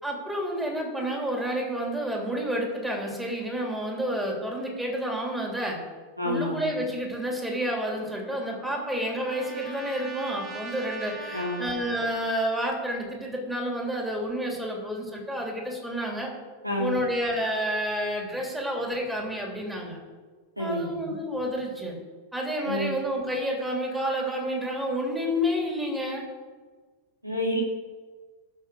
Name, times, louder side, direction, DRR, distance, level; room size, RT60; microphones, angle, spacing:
voice 1, 0.0-5.8 6.2-16.3 16.8-20.0 20.6-22.0 22.3-26.2, equal, 5° right, 0 dB, 2.9 m, -30 dB
voice 2, 6.2-6.7 11.3-11.7 16.6-17.0 20.6-21.1 22.7-22.9 27.2-27.6, equal, 90° right, -1 dB, 2.6 m, -29 dB
Trumpet, 7.8-12.6, right 2 dB, 30° right, 2.3 m, -42 dB
12.0 x 6.8 x 6.3 m, 1.4 s
figure-of-eight pair, 90°, 0 cm